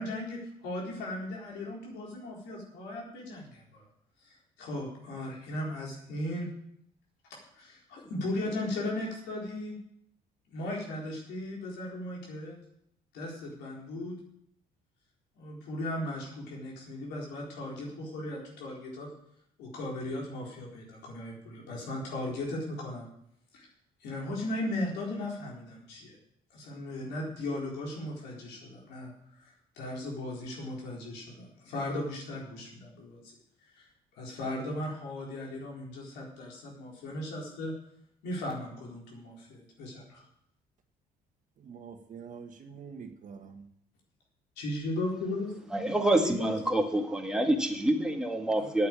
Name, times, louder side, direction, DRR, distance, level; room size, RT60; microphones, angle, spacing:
voice 1, 0.0-3.8 4.2-6.5 7.3-9.8 10.5-12.6 13.1-14.1 15.4-19.1 19.6-23.1 23.5-23.7 24.0-26.2 26.5-33.2 33.7-33.9 34.1-37.7 38.2-40.2 44.6-45.5 46.2-46.6 48.6-48.7, left 1 dB, 85° left, -2 dB, 4.1 m, -37 dB
voice 2, 41.6-43.6, right 6 dB, 50° right, 6 dB, 1.4 m, -45 dB
voice 3, 45.7-48.9, right 1 dB, 5° right, 2 dB, 1.9 m, -27 dB
9.5 x 8.6 x 8.8 m, 0.72 s
cardioid pair, 110°, 17 cm